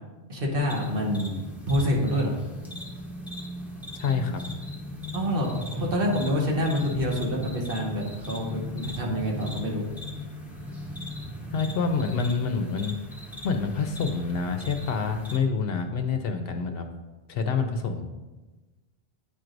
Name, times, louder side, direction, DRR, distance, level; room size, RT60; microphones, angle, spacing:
voice 1, 0.3-1.4 1.7-2.3 5.1-9.9, equal, 55° right, -1 dB, 1.3 m, -27 dB
sound 1, 0.7-15.4, left 1 dB, ahead, 0.8 m, -39 dB
voice 2, 4.0-4.4 11.5-12.9 13.4-16.9 17.3-18.1, left 5 dB, 65° left, 6 dB, 0.8 m, -27 dB
10.0 x 4.5 x 2.6 m, 1.2 s
omnidirectional pair, 1.1 m